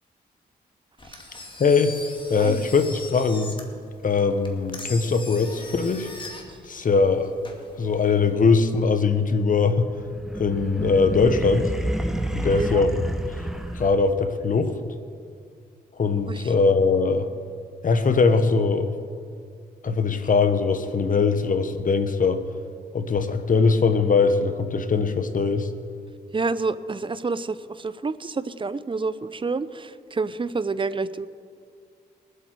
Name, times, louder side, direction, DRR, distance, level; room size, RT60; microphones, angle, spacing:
Engine, 1.0-8.3, left 2 dB, 30° left, 2.3 m, -41 dB
voice 1, 1.6-2.0 2.3-3.5 4.0-6.1 6.7-7.3 7.8-9.9 10.4-11.7 12.3-13.0 13.7-14.7 16.0-17.3 17.8-18.9 19.8-22.4 22.9-25.7, left 4 dB, 50° left, 9 dB, 1.2 m, -21 dB
sound 1, 10.0-14.2, equal, ahead, 1.2 m, -29 dB
voice 2, 12.5-12.8 16.3-16.5 26.3-31.3, right 4 dB, 30° right, 15 dB, 0.6 m, -28 dB
21.5 x 8.2 x 4.6 m, 2.3 s
cardioid pair, 60°, 17 cm